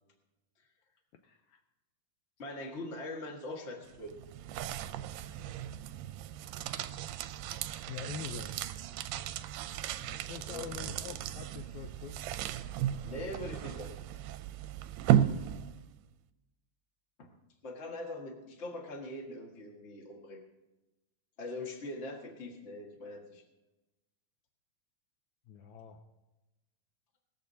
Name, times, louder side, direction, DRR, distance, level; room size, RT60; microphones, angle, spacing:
voice 1, 1.2-1.6 7.9-8.5 10.0-12.3 25.5-26.0, left 7 dB, 90° left, 5 dB, 1.6 m, -45 dB
voice 2, 2.4-4.3 10.4-10.7 13.0-13.9 17.2-17.3 17.6-20.4 21.4-23.4, left 1 dB, 60° left, 1 dB, 0.7 m, -42 dB
sound 1, 3.8-16.0, right 11 dB, 80° right, 2.2 m, -35 dB
19.5 x 14.0 x 2.8 m, 1.0 s
omnidirectional pair, 4.2 m